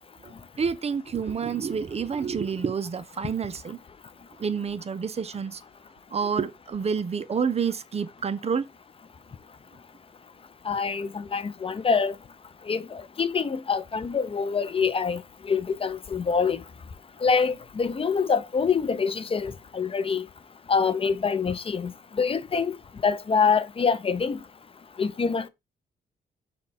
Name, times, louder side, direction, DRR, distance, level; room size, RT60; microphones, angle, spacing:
voice 1, 0.2-3.8 4.4-5.6 6.1-8.6, right 6 dB, 35° right, 0.5 m, -28 dB
voice 2, 10.7-12.1 12.7-16.6 17.2-20.2 20.7-22.8 23.0-24.4 25.0-25.5, left 5 dB, 30° left, 0.4 m, -25 dB
5.2 x 2.3 x 4.1 m
cardioid pair, 80°, 19 cm